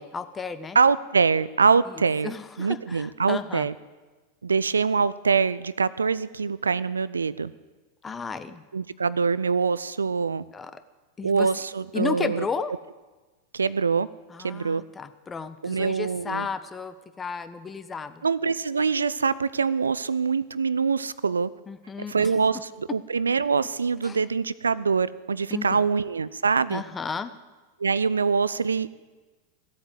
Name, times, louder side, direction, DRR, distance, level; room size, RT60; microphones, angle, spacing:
voice 1, 0.0-0.8 2.2-3.7 8.0-8.6 10.5-10.8 11.2-11.5 11.9-12.7 14.3-18.2 21.7-22.1 24.0-24.2 25.5-25.8 26.7-27.3, left 5 dB, 15° left, 12 dB, 0.8 m, -33 dB
voice 2, 0.7-3.7 4.4-7.5 8.7-10.4 11.2-12.4 13.5-14.1 14.4-14.8 15.6-16.5 18.2-21.5 22.1-26.8 27.8-28.9, right 5 dB, 75° right, 18 dB, 0.4 m, -24 dB
15.5 x 8.5 x 8.0 m, 1.2 s
figure-of-eight pair, 90°, 0 cm